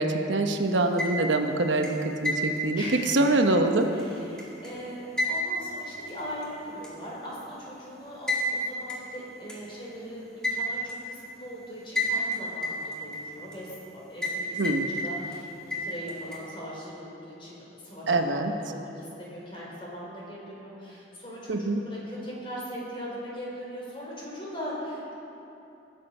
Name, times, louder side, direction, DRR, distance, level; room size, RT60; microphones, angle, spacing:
voice 1, 0.0-2.8 3.1-3.9 14.6-14.9 18.1-18.5 21.5-21.8, right 2 dB, 80° right, 5 dB, 0.9 m, -24 dB
sound 1, 0.8-1.4 1.8-4.7 5.2-6.4 6.8-6.9 8.3-8.5 8.9-9.0 9.5-9.6 10.4-11.0 12.0-12.3 12.6-13.6 14.2-14.4 14.6-15.4 15.7-16.4, left 1 dB, 5° left, 2.1 m, -30 dB
voice 2, 2.7-3.2 3.9-25.2, equal, 25° left, -5 dB, 3.9 m, -40 dB
20.5 x 7.6 x 5.5 m, 2.9 s
head